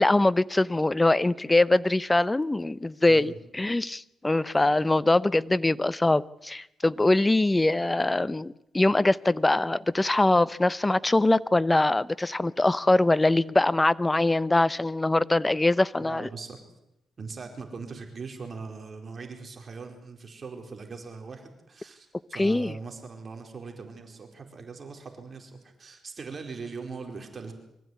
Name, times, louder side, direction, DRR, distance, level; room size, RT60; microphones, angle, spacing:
voice 1, 0.0-16.3 22.3-22.7, left 2 dB, 15° left, 0.8 m, -23 dB
voice 2, 3.1-3.4 16.0-16.6 17.2-25.5 25.8-27.5, right 4 dB, 40° right, 4.5 m, -40 dB
24.5 x 15.0 x 9.4 m
cardioid pair, 80°, 0 cm